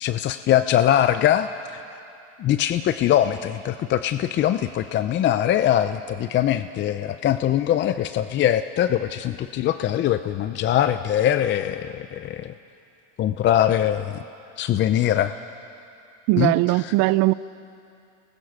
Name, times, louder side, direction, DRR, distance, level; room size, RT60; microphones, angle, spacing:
voice 1, 0.0-1.8 2.4-12.5 13.2-14.2 14.6-15.3 16.4-16.9, left 11 dB, 30° left, 11 dB, 0.6 m, -22 dB
voice 2, 16.3-17.3, right 20 dB, 50° right, 18 dB, 0.6 m, -19 dB
28.5 x 20.5 x 6.0 m, 2.6 s
supercardioid pair, 120°, 38 cm